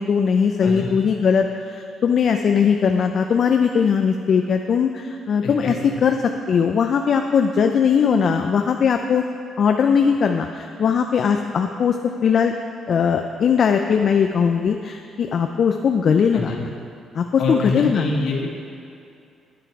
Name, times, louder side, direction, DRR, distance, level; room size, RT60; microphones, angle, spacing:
voice 1, 0.0-5.7 6.0-9.2 9.6-12.0 12.2-12.5 12.9-16.7 17.2-18.2, left 6 dB, 50° left, 5 dB, 0.4 m, -19 dB
voice 2, 0.6-1.0 5.4-5.7 16.3-16.6 17.4-18.5, left 2 dB, 70° left, -2 dB, 1.8 m, -25 dB
9.9 x 9.2 x 4.7 m, 2.5 s
cardioid pair, 120°, 0 cm